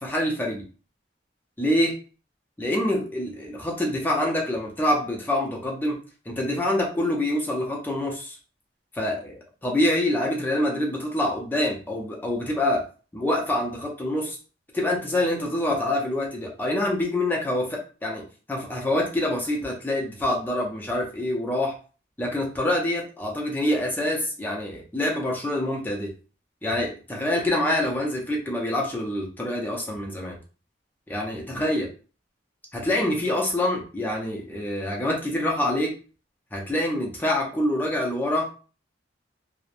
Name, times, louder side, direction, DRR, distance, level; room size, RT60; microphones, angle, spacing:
voice 1, 0.0-0.6 1.6-1.9 2.6-6.0 6.3-8.4 8.9-9.3 9.6-12.8 13.1-14.4 14.7-18.2 18.5-21.8 22.2-26.1 26.6-30.4 31.1-31.9 32.7-35.9 36.5-38.5, left 1 dB, 10° left, -2 dB, 0.5 m, -26 dB
3.0 x 2.1 x 2.5 m, 0.37 s
head